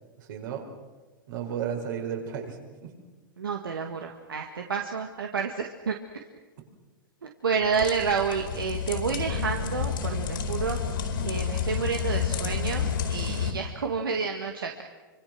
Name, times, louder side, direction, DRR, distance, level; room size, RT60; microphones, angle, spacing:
voice 1, 0.2-0.7 1.3-2.9, right 8 dB, 65° right, 2 dB, 5.5 m, -33 dB
voice 2, 3.4-5.9 7.2-10.8 11.2-14.8, right 5 dB, 90° right, 3 dB, 2.0 m, -29 dB
sound 1, 7.6-13.5, left 7 dB, 75° left, 4.5 m, -30 dB
26.5 x 26.0 x 6.2 m, 1.3 s
hypercardioid pair, 115°, 11 cm